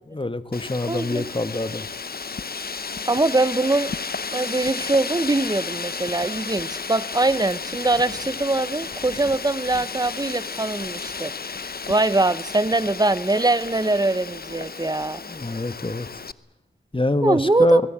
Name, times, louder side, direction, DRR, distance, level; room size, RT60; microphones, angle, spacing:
voice 1, 0.1-1.9 15.3-16.1 16.9-17.8, left 2 dB, 25° left, 12 dB, 1.5 m, -25 dB
Wind, 0.5-16.3, left 5 dB, 45° left, 0.8 m, -33 dB
voice 2, 0.9-1.3 3.1-3.9 4.3-15.2 17.2-17.8, right 2 dB, 20° right, 16 dB, 1.0 m, -23 dB
23.5 x 21.0 x 7.5 m, 0.88 s
cardioid pair, 45°, 21 cm